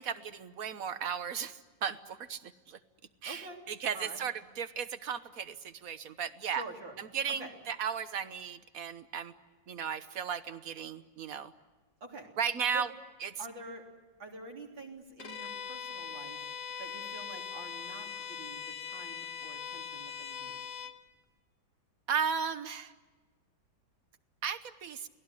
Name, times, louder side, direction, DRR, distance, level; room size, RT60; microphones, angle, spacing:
voice 1, 0.0-2.8 3.2-6.6 7.0-9.3 9.7-11.5 12.4-12.9 13.2-13.3 22.1-22.9 24.4-25.1, right 7 dB, 55° right, 12 dB, 1.3 m, -35 dB
voice 2, 3.3-3.6 3.9-4.2 6.5-7.0 7.3-7.5 12.0-12.3 12.7-12.9 13.4-13.9 14.2-20.6, right 2 dB, 80° right, 0 dB, 4.3 m, -47 dB
Bowed string instrument, 15.2-21.0, left 7 dB, 45° left, 1.4 m, -41 dB
29.0 x 19.5 x 9.8 m, 1.2 s
omnidirectional pair, 2.0 m